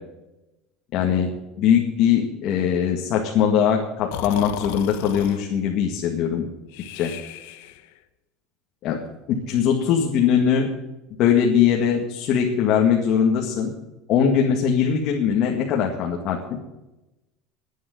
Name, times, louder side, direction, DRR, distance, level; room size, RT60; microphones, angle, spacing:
voice 1, 0.9-1.3 1.6-6.5 6.9-7.1 8.8-9.0 9.3-10.7 11.2-13.7 14.1-16.6, left 8 dB, 45° left, 0 dB, 1.9 m, -21 dB
Breathing, 4.1-5.4 6.7-8.0, left 12 dB, 75° left, 1.2 m, -35 dB
12.0 x 9.5 x 9.4 m, 0.99 s
cardioid pair, 165°, 0 cm